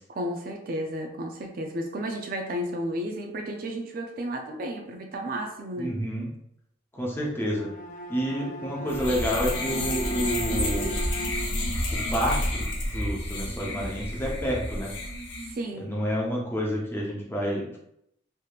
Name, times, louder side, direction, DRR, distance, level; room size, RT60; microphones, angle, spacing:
voice 1, 0.1-6.0 15.5-16.0, equal, 50° right, 3 dB, 0.4 m, -33 dB
voice 2, 5.8-6.3 6.9-7.7 8.1-11.0 12.1-14.9 15.8-17.8, equal, 10° left, -3 dB, 0.7 m, -29 dB
Bowed string instrument, 7.4-11.7, right 2 dB, 45° left, 0.3 m, -37 dB
sound 1, 8.9-15.5, left 1 dB, 85° left, 0.8 m, -30 dB
3.4 x 2.9 x 2.3 m, 0.74 s
head